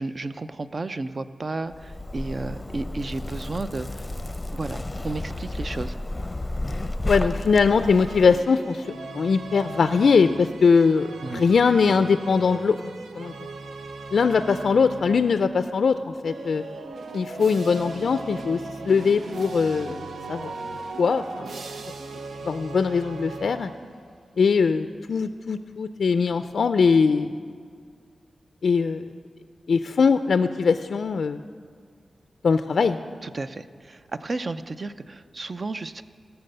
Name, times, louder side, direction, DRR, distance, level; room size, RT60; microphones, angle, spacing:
voice 1, 0.0-4.1 4.5-6.0 11.2-11.4 33.2-36.0, right 3 dB, 45° right, 11 dB, 0.5 m, -33 dB
Zipper (clothing), 1.7-8.4, left 1 dB, 20° left, 0.6 m, -32 dB
voice 2, 7.0-8.9 9.1-12.8 13.2-13.3 14.1-16.6 17.1-20.5 21.0-21.6 22.4-23.7 24.4-27.4 28.6-29.0 29.7-31.4 32.4-33.0, left 5 dB, 75° left, 10 dB, 0.3 m, -21 dB
sound 1, 7.7-15.6 16.2-24.1, right 3 dB, 90° right, 0.6 m, -38 dB
17.5 x 6.9 x 6.6 m, 2.1 s
wide cardioid pair, 85°, 0 cm